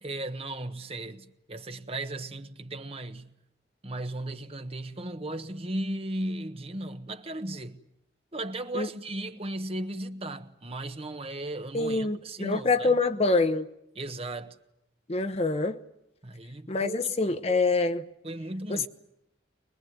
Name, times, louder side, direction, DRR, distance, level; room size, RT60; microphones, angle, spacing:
voice 1, 0.0-3.3 3.8-7.8 8.3-12.9 14.0-14.6 16.2-17.4 18.2-18.9, right 1 dB, 35° right, 1.3 m, -36 dB
voice 2, 11.7-13.7 15.1-15.8 16.7-18.0 18.7-18.9, left 3 dB, 35° left, 1.0 m, -25 dB
24.5 x 21.5 x 9.4 m
head